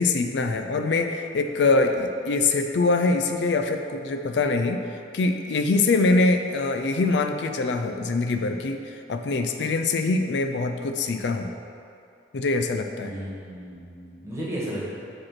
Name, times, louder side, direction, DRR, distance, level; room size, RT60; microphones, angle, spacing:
voice 1, 0.0-11.5 12.3-13.1, left 3 dB, 80° left, 6 dB, 0.4 m, -24 dB
voice 2, 13.0-14.8, equal, 15° right, -7 dB, 1.4 m, -34 dB
5.3 x 4.4 x 5.8 m, 2.5 s
head